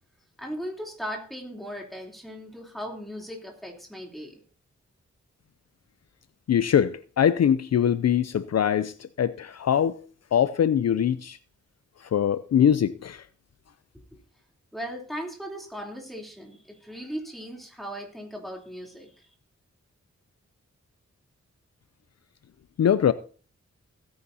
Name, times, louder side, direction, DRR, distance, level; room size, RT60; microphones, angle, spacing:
voice 1, 0.4-4.4 14.7-19.3, equal, ahead, 3.2 m, -38 dB
voice 2, 6.5-10.0 10.3-11.4 12.1-13.2 22.8-23.1, left 9 dB, 60° left, 0.5 m, -22 dB
16.5 x 9.6 x 2.7 m
wide cardioid pair, 85°, 29 cm